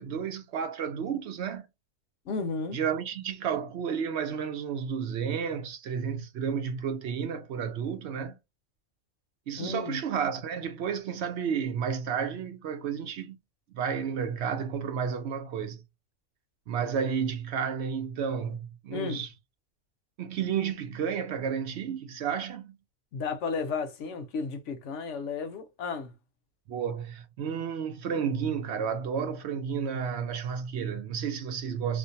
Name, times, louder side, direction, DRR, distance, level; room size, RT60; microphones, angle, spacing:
voice 1, 0.0-1.7 2.7-8.4 9.5-13.4 13.7-15.8 16.7-19.3 20.2-22.8 26.7-32.0, right 7 dB, 65° right, 0.8 m, -31 dB
voice 2, 2.3-2.8 9.6-10.0 18.9-19.2 23.1-26.1, left 4 dB, 70° left, 0.9 m, -33 dB
2.5 x 2.1 x 2.6 m
omnidirectional pair, 1.3 m